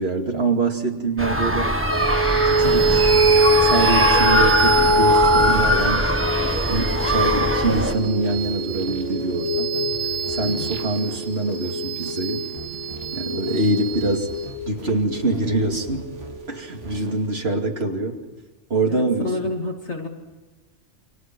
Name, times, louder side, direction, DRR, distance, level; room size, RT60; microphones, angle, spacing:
voice 1, 0.0-1.7 2.4-3.1 3.6-6.1 6.4-9.7 10.3-12.4 13.1-14.3 14.7-16.1 16.5-18.2 18.7-19.3, right 2 dB, 60° right, 2 dB, 2.9 m, -24 dB
sound 1, 1.2-7.9, equal, 10° right, 1.6 m, -21 dB
sound 2, 1.9-16.7, right 2 dB, 75° right, 2.0 m, -23 dB
sound 3, 2.2-16.5 16.8-17.1, equal, 25° right, 4.7 m, -43 dB
voice 2, 10.4-10.8 17.1-17.2 18.9-20.1, left 3 dB, 65° left, 2 dB, 3.1 m, -30 dB
29.0 x 24.0 x 6.2 m, 1.2 s
omnidirectional pair, 1.2 m